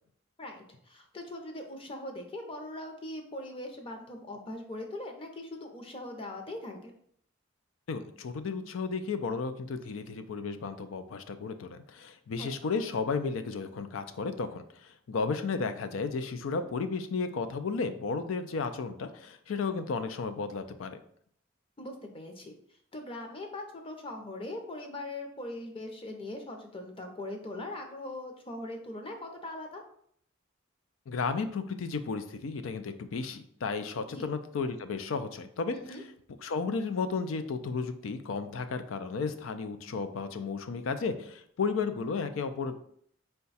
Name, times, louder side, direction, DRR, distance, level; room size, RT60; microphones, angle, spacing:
voice 1, 0.4-6.9 12.4-12.5 21.8-22.5 22.9-29.8 34.1-34.3 35.7-36.0, left 1 dB, 30° left, 3 dB, 0.6 m, -41 dB
voice 2, 7.9-21.0 31.1-35.8 36.4-42.8, left 4 dB, 85° left, 9 dB, 0.4 m, -33 dB
4.6 x 2.2 x 4.0 m, 0.65 s
head